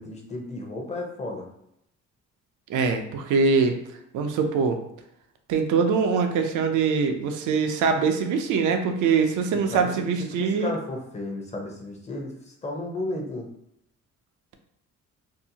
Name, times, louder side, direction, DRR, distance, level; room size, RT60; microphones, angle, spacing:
voice 1, 0.0-1.5 9.7-10.1 10.4-13.5, left 2 dB, 20° left, 0 dB, 0.7 m, -33 dB
voice 2, 2.7-3.8 4.1-4.8 5.5-10.7, right 5 dB, 80° right, 5 dB, 0.5 m, -23 dB
2.7 x 2.0 x 2.7 m, 0.77 s
cardioid pair, 90°, 30 cm